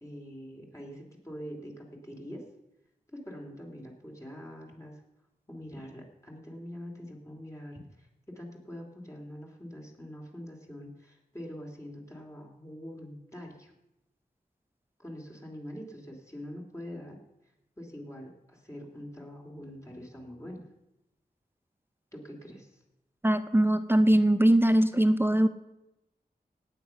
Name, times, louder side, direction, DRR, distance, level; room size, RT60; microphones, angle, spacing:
voice 1, 0.0-2.4 3.1-5.0 5.5-8.1 8.3-13.7 15.0-17.2 17.8-20.6 22.1-22.8, equal, 20° left, -1 dB, 2.8 m, -44 dB
voice 2, 23.2-25.5, right 1 dB, 15° right, 11 dB, 0.6 m, -22 dB
17.5 x 8.3 x 5.7 m, 0.92 s
wide cardioid pair, 70°, 17 cm